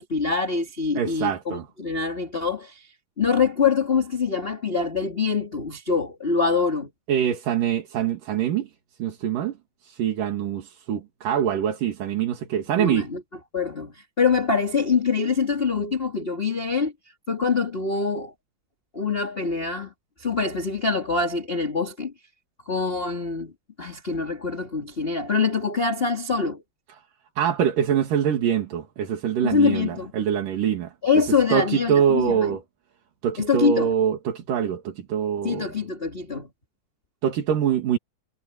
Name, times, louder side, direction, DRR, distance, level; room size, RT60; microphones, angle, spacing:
voice 1, 0.0-2.9 3.2-6.9 12.8-13.2 13.5-16.9 17.3-18.3 18.9-19.9 20.2-22.1 22.7-23.5 23.8-26.6 29.4-30.1 31.0-32.6 33.4-33.9 35.4-36.5, left 5 dB, 20° left, 1.9 m, -24 dB
voice 2, 1.0-1.7 7.1-8.7 9.0-9.5 9.8-13.1 27.4-30.9 31.5-32.6 33.2-35.7 37.2-38.0, right 9 dB, 80° right, 3.8 m, -24 dB
omnidirectional pair, 3.8 m